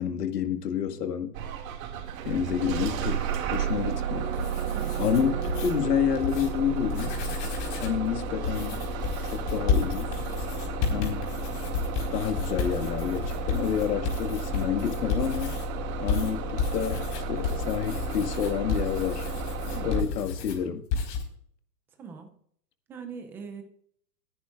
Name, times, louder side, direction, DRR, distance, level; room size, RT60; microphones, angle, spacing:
voice 1, 0.0-1.3 2.3-4.3 5.0-7.1 7.8-8.8 9.3-10.1 10.9-11.2 12.1-15.6 16.0-19.3 19.8-20.8, left 8 dB, 70° left, 2.0 m, -29 dB
Bus / Engine starting, 1.3-20.0, right 4 dB, 55° right, 2.3 m, -32 dB
sound 1, 4.2-5.7 6.1-6.5 6.8-8.0 8.4-15.7 16.1-20.6 20.9-21.2, left 5 dB, 40° left, 4.4 m, -32 dB
voice 2, 4.7-5.2 10.9-11.1 19.7-20.3 22.0-22.3 22.9-23.6, right 6 dB, 5° right, 0.4 m, -42 dB
22.0 x 10.0 x 2.5 m
hypercardioid pair, 130°, 49 cm